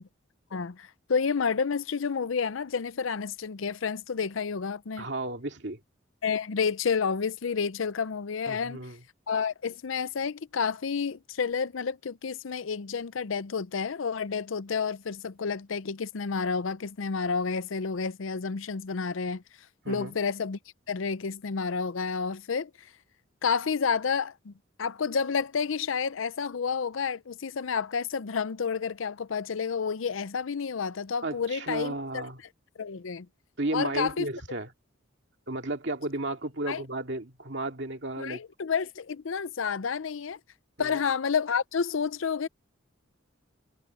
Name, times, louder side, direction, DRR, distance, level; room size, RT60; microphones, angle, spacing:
voice 1, 0.5-5.1 6.2-8.8 9.3-19.4 19.9-20.6 20.9-22.7 23.4-24.5 24.8-32.2 32.8-33.3 33.7-34.3 36.7-36.8 38.2-40.4 40.8-42.5, left 5 dB, 80° left, 0.6 m, -30 dB
voice 2, 5.0-5.8 8.5-9.0 19.8-20.1 31.2-32.4 33.6-34.7 35.5-38.4 40.8-41.0, right 2 dB, 60° right, 2.3 m, -33 dB
head